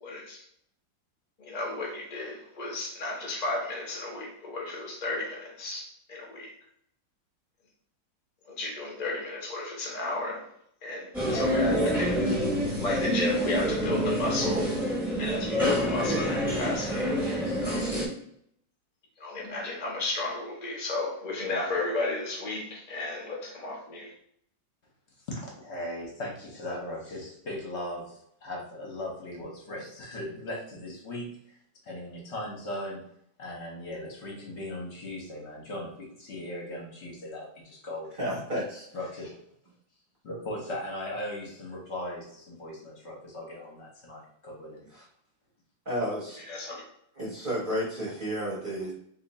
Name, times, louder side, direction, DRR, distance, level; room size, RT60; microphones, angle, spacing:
voice 1, 0.0-0.4 1.4-6.5 8.5-10.4 10.8-12.3 12.8-14.7 15.2-17.2 17.6-17.8 19.2-24.1 46.5-46.8, left 2 dB, 75° left, -2 dB, 0.3 m, -33 dB
sound 1, 11.1-18.1, equal, ahead, 0.7 m, -27 dB
voice 2, 25.3-31.4 31.8-33.0 33.4-38.2 38.9-39.3 40.2-44.8, left 1 dB, 50° left, -2 dB, 0.8 m, -38 dB
voice 3, 38.2-38.9 44.9-45.0 45.9-46.4 47.2-48.9, equal, 35° right, -4 dB, 0.8 m, -31 dB
2.8 x 2.6 x 4.0 m, 0.70 s
omnidirectional pair, 2.2 m